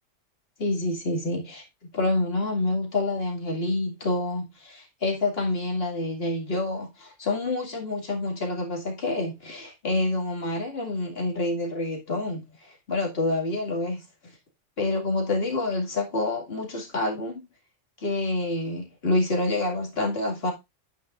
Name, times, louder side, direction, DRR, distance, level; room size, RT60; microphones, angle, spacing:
voice 1, 0.6-14.0 14.8-17.4 18.0-20.5, left 2 dB, 50° left, 2.4 m, -27 dB
9.2 x 8.9 x 2.5 m
omnidirectional pair, 1.4 m